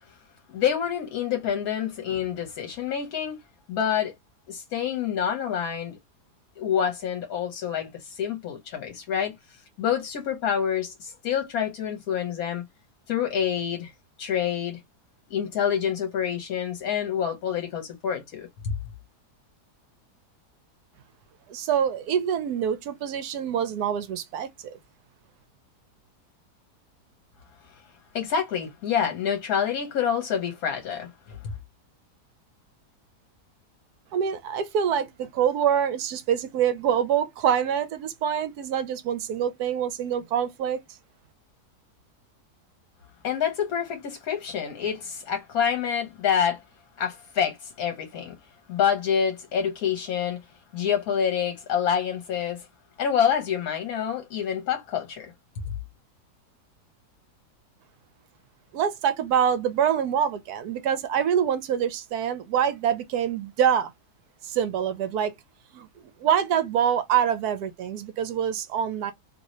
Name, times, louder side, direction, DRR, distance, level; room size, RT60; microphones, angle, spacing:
voice 1, 0.5-3.4 3.7-4.1 4.5-6.0 6.6-12.6 13.1-13.9 14.2-14.8 15.3-18.7 28.1-31.4 43.2-46.6 47.0-48.3 48.7-50.4 50.7-52.7 53.0-55.3, left 8 dB, 65° left, 1.2 m, -27 dB
voice 2, 21.5-24.8 34.1-40.8 58.7-63.9 64.4-65.3 65.7-65.9 66.2-69.1, right 8 dB, 75° right, 1.1 m, -25 dB
2.9 x 2.7 x 2.9 m
omnidirectional pair, 1.7 m